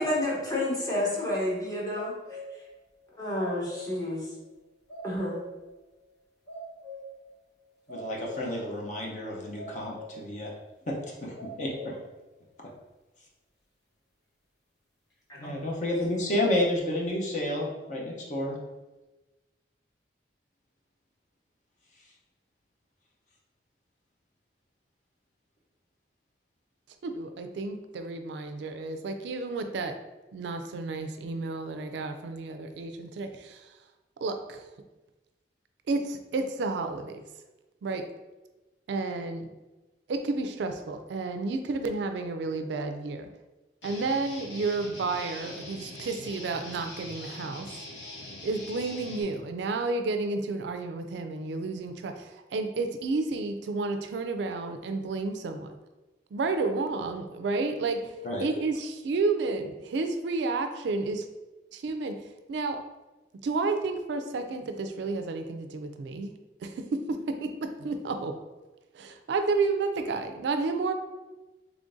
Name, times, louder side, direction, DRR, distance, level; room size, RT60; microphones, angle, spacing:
voice 1, 0.0-2.4 3.1-4.3 5.0-5.4 15.3-15.5, left 1 dB, 20° left, -5 dB, 0.9 m, -30 dB
sound 1, 1.9-2.7 3.0-4.2 4.4-4.6 4.9-5.7 6.0-6.1 6.5-7.3 7.6-8.7 9.0-9.1 9.6-10.4 10.7-10.8 11.4-12.1, equal, 60° left, 1.1 m, -43 dB
voice 2, 7.9-10.5 10.9-12.0 15.4-18.6 58.2-58.5, left 1 dB, 40° left, -2 dB, 0.7 m, -30 dB
voice 3, 27.0-30.0 30.3-33.7 34.2-34.6 35.9-37.2 37.8-38.1 38.9-39.5 40.1-43.3 43.8-47.9 48.4-55.8 56.3-58.1 58.4-61.2 61.7-62.2 62.5-62.8 63.4-66.3 66.6-68.4 68.9-70.9, right 3 dB, 70° right, 7 dB, 0.3 m, -31 dB
Guitar, 43.8-49.2, left 1 dB, 80° left, 1.0 m, -43 dB
3.6 x 3.3 x 2.6 m, 1.1 s
head